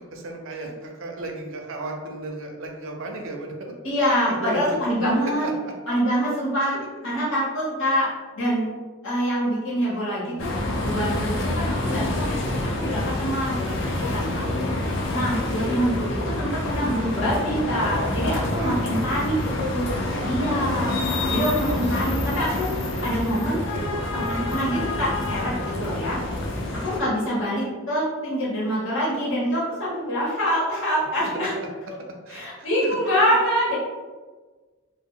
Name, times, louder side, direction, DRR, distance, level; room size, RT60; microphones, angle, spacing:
voice 1, 0.1-3.7 4.3-4.8 5.4-5.7 18.0-18.7 19.1-19.4 31.2-31.7 32.3-33.0, right 2 dB, 70° right, 1 dB, 0.5 m, -35 dB
voice 2, 3.8-5.5 5.9-6.7 7.0-8.1 8.4-8.7 9.0-10.5 10.8-12.3 12.8-14.4 15.1-19.9 20.2-20.9 21.3-22.7 23.0-26.2 26.8-31.5 32.3-33.8, equal, 75° left, -7 dB, 1.0 m, -25 dB
sound 1, 10.4-27.0, left 2 dB, 60° left, 0.5 m, -27 dB
2.1 x 2.1 x 3.6 m, 1.3 s
head